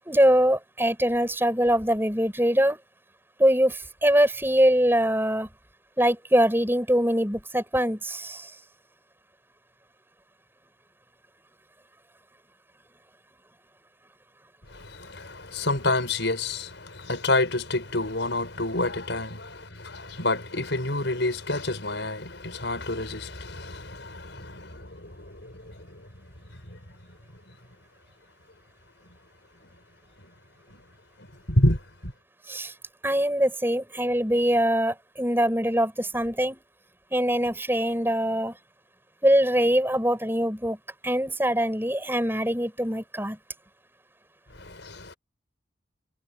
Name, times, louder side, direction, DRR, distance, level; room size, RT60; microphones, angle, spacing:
voice 1, 0.1-2.8 3.4-5.5 6.0-8.5 32.5-32.7 33.0-36.6 37.1-38.5 39.2-40.8 41.0-43.4, equal, 10° right, 7.9 m, -23 dB
voice 2, 14.7-26.0 26.7-26.8 30.7-30.8 31.5-32.1 44.6-45.1, left 2 dB, 65° left, 5.7 m, -28 dB
head